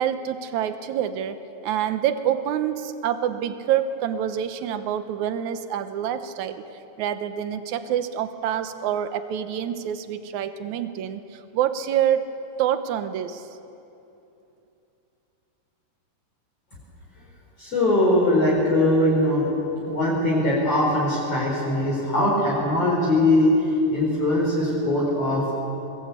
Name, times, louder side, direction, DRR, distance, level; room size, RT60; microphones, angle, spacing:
voice 1, 0.0-1.4 1.6-6.6 7.0-12.2 12.6-13.5, right 10 dB, 70° right, 10 dB, 1.8 m, -26 dB
voice 2, 17.6-19.4 19.8-23.5 23.9-25.5, left 1 dB, 40° left, -5 dB, 5.3 m, -21 dB
24.5 x 21.0 x 8.3 m, 2.9 s
omnidirectional pair, 4.5 m